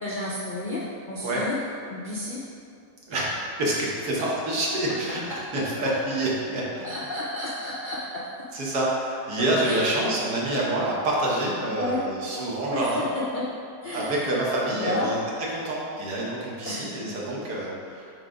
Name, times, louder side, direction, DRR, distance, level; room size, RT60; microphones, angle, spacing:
voice 1, 0.0-1.5 1.9-2.4 5.3-5.9 6.8-8.2 9.6-10.0 11.8-12.0 12.7-13.5 13.8-14.3 14.8-15.1 16.6-17.1, left 2 dB, 60° left, -6 dB, 0.5 m, -32 dB
voice 2, 3.6-6.9 8.5-13.1 13.9-15.2 15.5-18.1, right 1 dB, 75° right, -5 dB, 1.7 m, -27 dB
4.9 x 3.9 x 4.9 m, 2.4 s
omnidirectional pair, 1.7 m